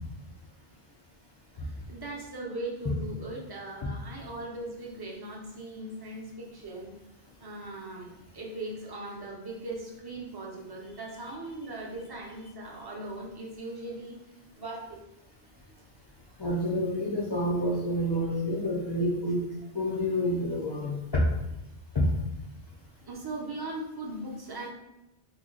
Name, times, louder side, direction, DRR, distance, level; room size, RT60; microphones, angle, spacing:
voice 1, 1.5-6.9 7.4-14.2 14.6-15.0 23.0-24.7, right 2 dB, 30° right, -2 dB, 0.5 m, -39 dB
voice 2, 16.4-19.4 19.7-21.0 21.9-22.1, equal, 45° left, -5 dB, 0.3 m, -28 dB
2.9 x 2.1 x 3.8 m, 0.90 s
omnidirectional pair, 1.0 m